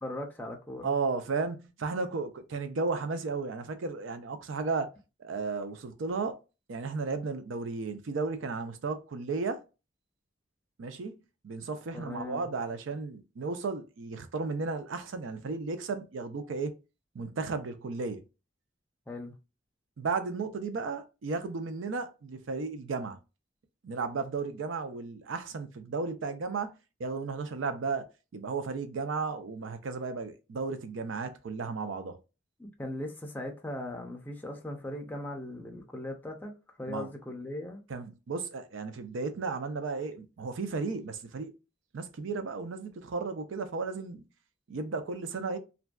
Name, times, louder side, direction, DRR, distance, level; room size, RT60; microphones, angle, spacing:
voice 1, 0.0-0.9 11.9-12.5 19.1-19.3 32.6-36.5 36.8-37.8, left 1 dB, 10° left, 0.4 m, -39 dB
voice 2, 0.8-4.9 5.2-6.4 6.7-9.6 10.8-11.2 11.4-16.7 17.1-18.2 20.0-23.2 23.8-26.7 27.0-32.2 36.9-37.1 37.9-41.5 41.9-44.3 44.7-45.6, right 4 dB, 85° right, 0.5 m, -34 dB
2.5 x 2.2 x 2.2 m
head